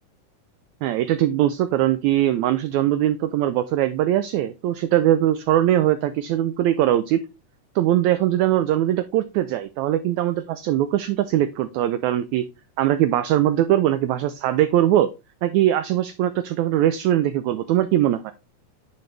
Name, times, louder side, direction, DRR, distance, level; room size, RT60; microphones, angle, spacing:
voice 1, 0.8-7.2 7.7-12.5 12.8-15.1 15.4-18.3, right 12 dB, 85° right, 11 dB, 1.6 m, -21 dB
9.7 x 3.9 x 3.3 m, 0.26 s
omnidirectional pair, 3.8 m